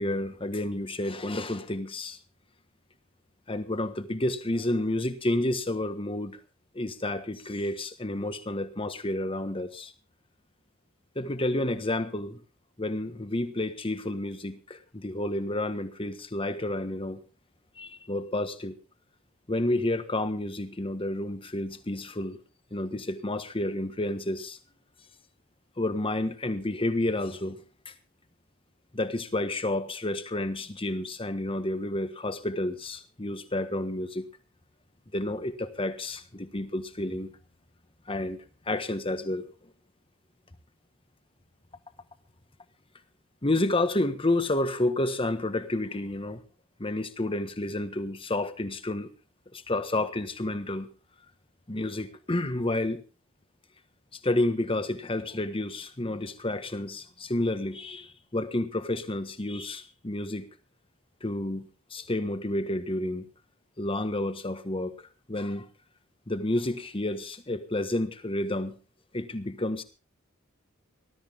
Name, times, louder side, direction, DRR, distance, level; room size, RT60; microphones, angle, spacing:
voice 1, 0.0-2.2 3.5-6.4 6.7-9.9 11.1-12.4 12.8-17.2 17.8-18.7 19.5-22.4 22.7-24.6 25.8-27.6 27.8-27.9 28.9-34.3 35.1-37.3 38.1-39.5 43.4-46.4 46.8-49.1 49.5-50.9 51.7-53.0 54.2-60.5 61.2-63.2 63.8-65.0 65.3-65.7 66.3-68.8 69.1-69.8, left 1 dB, 25° left, 1.4 m, -30 dB
19.5 x 13.0 x 3.6 m
head